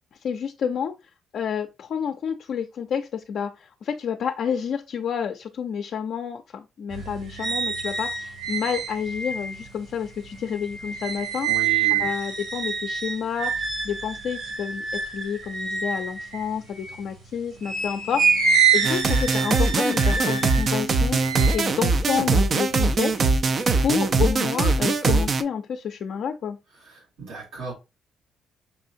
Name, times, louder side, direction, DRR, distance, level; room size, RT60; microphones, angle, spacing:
voice 1, 0.2-0.9 1.3-26.6, left 7 dB, 65° left, 0.4 m, -29 dB
sound 1, 6.9-17.1 17.6-23.1 23.5-24.1, right 6 dB, 65° right, 2.1 m, -27 dB
voice 2, 11.5-12.1 26.8-27.7, right 4 dB, 90° right, 2.2 m, -36 dB
sound 2, 18.8-25.4, right 3 dB, 45° right, 0.4 m, -22 dB
5.6 x 2.7 x 2.6 m
cardioid pair, 90°, 0 cm